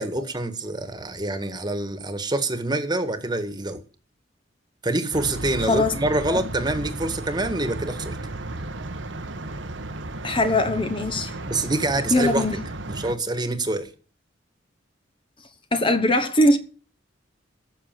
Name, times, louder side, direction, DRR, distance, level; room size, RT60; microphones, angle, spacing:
voice 1, 0.0-3.8 4.8-8.2 11.5-12.5 12.9-13.9, right 2 dB, 20° right, 1.7 m, -26 dB
sound 1, 5.1-13.1, right 2 dB, 75° right, 1.3 m, -34 dB
voice 2, 10.2-11.3 12.1-12.6 15.7-16.6, left 1 dB, 25° left, 1.1 m, -21 dB
15.5 x 6.8 x 7.5 m
head